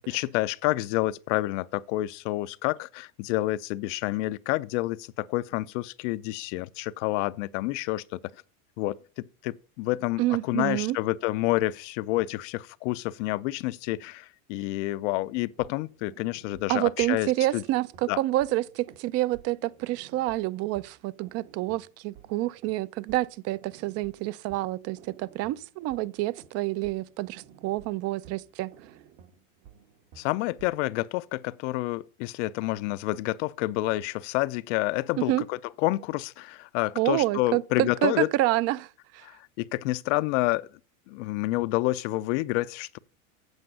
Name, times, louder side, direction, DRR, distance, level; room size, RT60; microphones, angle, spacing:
voice 1, 0.1-8.2 8.8-17.6 18.1-18.2 30.2-38.3 39.2-40.7 41.1-43.0, left 18 dB, 60° left, 0.6 m, -29 dB
voice 2, 10.2-11.0 16.7-28.7 35.3-35.4 37.0-38.9 39.1-39.2, right 16 dB, 35° right, 0.4 m, -28 dB
sound 1, 15.5-30.9, right 9 dB, 60° right, 1.6 m, -54 dB
8.0 x 7.4 x 5.4 m
supercardioid pair, 120°, 42 cm